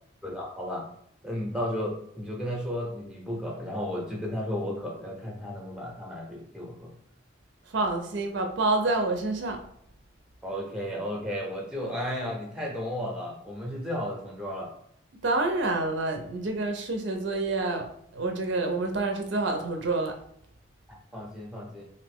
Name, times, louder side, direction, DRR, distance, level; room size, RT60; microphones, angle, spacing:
voice 1, 0.2-0.8 1.2-7.0 10.4-14.7 20.9-21.8, equal, 5° right, -1 dB, 0.6 m, -34 dB
voice 2, 7.7-9.6 15.2-20.2, right 2 dB, 60° right, 4 dB, 0.5 m, -28 dB
3.0 x 2.6 x 3.4 m, 0.69 s
head